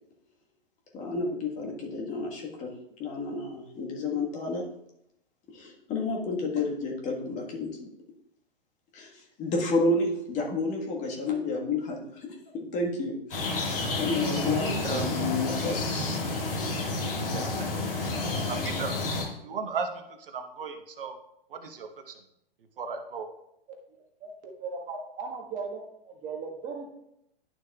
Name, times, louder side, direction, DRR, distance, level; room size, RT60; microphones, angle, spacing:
voice 1, 0.9-2.7 3.0-4.6 5.5-7.7 8.9-9.1 9.4-12.3 12.5-13.7 14.0-16.2 17.2-17.5, left 3 dB, 25° left, 0 dB, 1.4 m, -30 dB
sound 1, 13.3-19.3, left 2 dB, 65° left, 2.2 m, -30 dB
voice 2, 17.3-17.7 18.5-19.9 20.3-21.2 21.5-22.1 22.8-23.3, right 5 dB, 65° right, 6 dB, 1.0 m, -36 dB
voice 3, 23.9-26.9, right 4 dB, 25° right, 1 dB, 1.4 m, -38 dB
11.5 x 6.4 x 2.3 m, 0.78 s
figure-of-eight pair, 115°, 30 cm